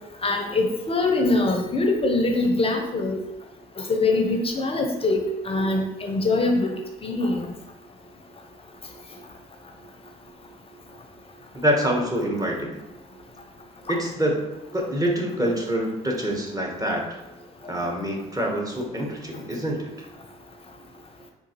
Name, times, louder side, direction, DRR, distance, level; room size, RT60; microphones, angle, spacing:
voice 1, 0.2-3.2 3.8-6.7 7.0-7.5, left 2 dB, 30° left, 3 dB, 0.6 m, -23 dB
voice 2, 11.5-12.8 13.9-17.2 17.7-20.1, equal, 20° right, 0 dB, 1.0 m, -26 dB
3.8 x 2.5 x 2.8 m, 0.96 s
hypercardioid pair, 50°, 19 cm